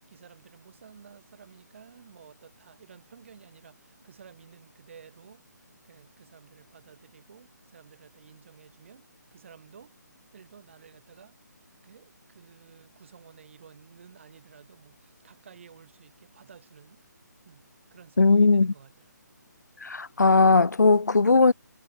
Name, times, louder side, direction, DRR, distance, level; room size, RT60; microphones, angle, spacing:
voice 1, 0.1-9.9 10.3-11.4 11.8-17.0 17.4-17.6 17.9-19.1, right 7 dB, 40° right, 7.6 m, -53 dB
voice 2, 18.2-18.7 19.8-21.5, left 3 dB, 65° left, 0.7 m, -19 dB
figure-of-eight pair, 145°, 10 cm